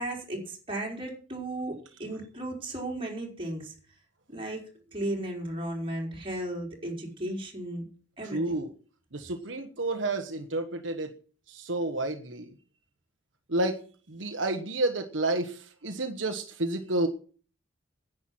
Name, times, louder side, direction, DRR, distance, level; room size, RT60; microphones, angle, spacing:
voice 1, 0.0-3.7 4.3-7.8 8.2-8.5, right 1 dB, 30° right, 0 dB, 4.6 m, -35 dB
voice 2, 8.2-8.7 9.1-11.1 11.5-12.5 13.5-17.1, right 2 dB, 70° right, 5 dB, 1.3 m, -30 dB
10.5 x 9.2 x 7.7 m, 0.40 s
head